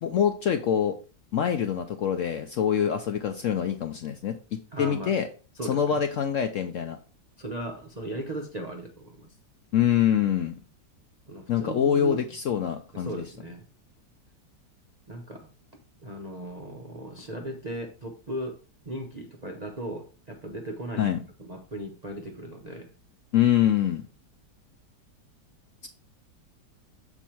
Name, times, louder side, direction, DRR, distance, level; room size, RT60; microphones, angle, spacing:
voice 1, 0.0-1.0 1.3-5.3 5.7-7.0 9.7-10.6 11.5-13.2 21.0-21.2 23.3-24.1, left 9 dB, 70° left, 0.7 m, -25 dB
voice 2, 4.7-5.1 5.5-6.0 7.4-9.3 11.3-12.2 12.9-13.6 15.1-15.5 16.0-18.6 18.9-22.9, right 1 dB, 50° right, 0.5 m, -37 dB
7.0 x 4.4 x 4.4 m
omnidirectional pair, 1.8 m